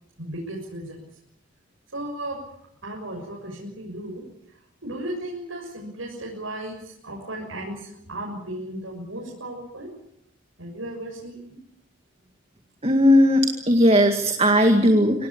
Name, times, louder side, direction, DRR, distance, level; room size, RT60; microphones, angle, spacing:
voice 1, 0.2-1.0 1.9-2.4 2.8-4.2 4.8-9.9 10.6-11.6, right 1 dB, 90° right, -3 dB, 6.8 m, -35 dB
voice 2, 12.8-15.3, equal, 30° right, 5 dB, 2.1 m, -17 dB
26.0 x 18.5 x 8.7 m, 0.74 s
head